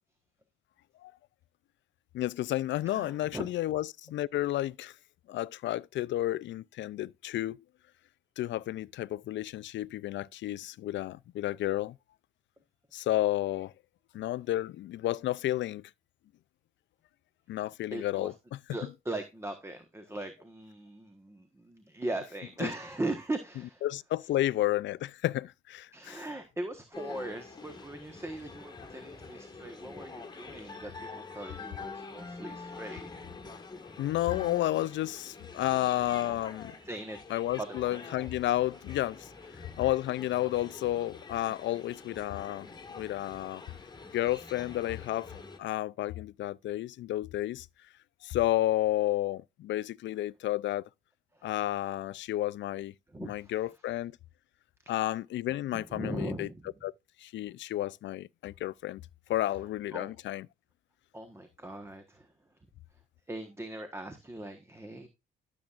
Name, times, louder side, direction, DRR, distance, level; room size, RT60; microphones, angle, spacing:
voice 1, 2.1-4.9 5.3-7.6 8.4-12.0 12.9-13.7 14.1-15.8 17.5-18.6 22.6-22.7 23.8-26.2 34.0-36.7 37.3-43.6 44.1-47.7 48.2-50.9 51.4-52.9 53.2-54.1 54.9-56.5 56.8-56.9 57.2-59.0 59.3-60.5, left 14 dB, 65° left, 0.4 m, -31 dB
voice 2, 2.8-3.5 17.9-18.3 18.7-23.8 25.9-33.1 35.6-35.7 36.8-37.2 37.6-38.0 39.5-39.6 41.4-41.5 51.3-51.5 53.1-53.5 54.8-54.9 55.7-56.7 59.9-60.1 61.1-62.3 63.3-65.1, right 2 dB, 15° right, 1.3 m, -39 dB
sound 1, 26.9-45.6, left 4 dB, 20° left, 1.8 m, -46 dB
12.5 x 7.2 x 2.5 m
cardioid pair, 90°, 20 cm